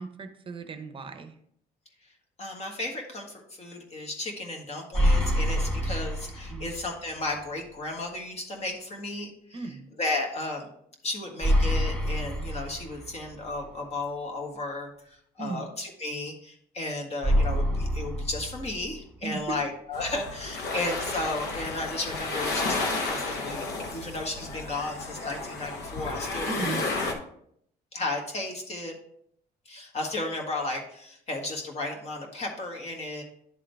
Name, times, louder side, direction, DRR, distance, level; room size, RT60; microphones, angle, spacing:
voice 1, 0.0-1.3 6.5-6.7 9.5-9.8 15.4-15.7 19.2-19.6 26.5-26.8, right 4 dB, 30° right, 9 dB, 0.7 m, -36 dB
voice 2, 2.4-9.6 10.0-10.7 11.0-23.6 23.9-26.9 27.9-28.9 29.6-33.2, left 2 dB, 40° left, 1 dB, 1.6 m, -34 dB
sound 1, 4.9-7.0 7.3-7.4 11.4-13.4 17.2-19.2, equal, 5° left, 2.2 m, -26 dB
sound 2, 19.9-27.1, left 3 dB, 85° left, 1.0 m, -32 dB
11.0 x 3.7 x 3.4 m, 0.69 s
cardioid pair, 110°, 17 cm